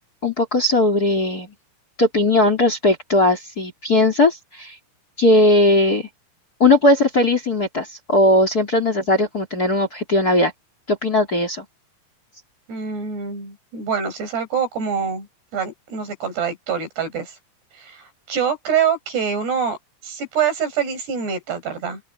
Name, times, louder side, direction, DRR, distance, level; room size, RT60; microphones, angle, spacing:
voice 1, 0.2-1.5 2.0-4.8 5.2-6.1 6.6-10.5 10.9-11.6, left 1 dB, 25° left, 3.1 m, -18 dB
voice 2, 12.7-15.3 15.5-17.4 17.8-18.0 18.3-19.8 20.0-22.0, right 7 dB, 75° right, 9.0 m, -25 dB
open air
omnidirectional pair, 4.8 m